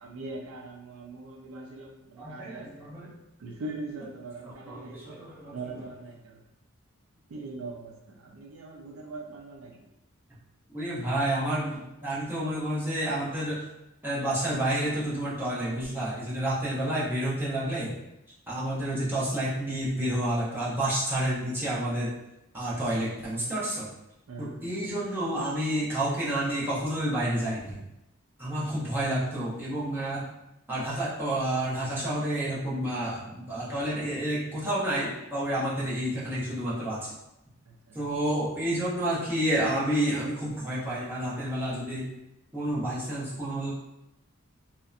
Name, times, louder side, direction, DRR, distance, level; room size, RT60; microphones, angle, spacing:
voice 1, 0.0-2.8 3.4-5.3 5.5-6.4 7.3-7.9 8.2-9.7 24.3-24.7, right 2 dB, 80° right, 0 dB, 0.4 m, -41 dB
voice 2, 2.2-3.1 4.4-5.9 10.7-13.6 14.0-17.9 18.5-22.1 22.5-23.9 24.4-27.8 28.4-30.3 30.7-37.1 37.9-42.1 42.5-43.7, right 1 dB, 10° right, -9 dB, 0.7 m, -29 dB
2.6 x 2.1 x 2.4 m, 0.89 s
head